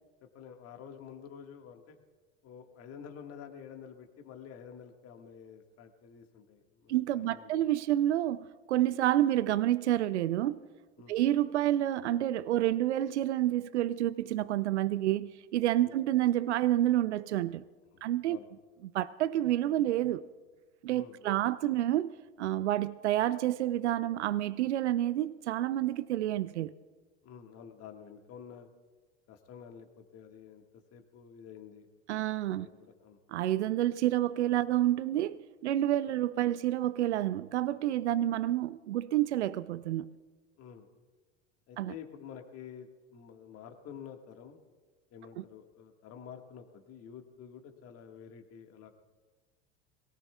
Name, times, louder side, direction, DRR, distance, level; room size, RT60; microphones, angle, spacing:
voice 1, 0.2-2.0 2.4-7.6 11.0-11.2 15.8-15.9 17.9-18.5 20.9-21.4 27.2-28.7 29.3-30.6 30.9-31.9 32.5-33.2 38.0-38.2 40.6-40.9 41.7-44.6 45.1-48.9, left 7 dB, 45° left, 1.7 m, -49 dB
voice 2, 6.9-10.6 11.1-17.6 18.0-18.4 18.8-20.2 20.8-26.7 32.1-32.7 33.3-40.1 41.8-41.9 45.4-45.5, right 13 dB, 90° right, 0.5 m, -29 dB
23.0 x 17.5 x 2.3 m
hypercardioid pair, 85°, 34 cm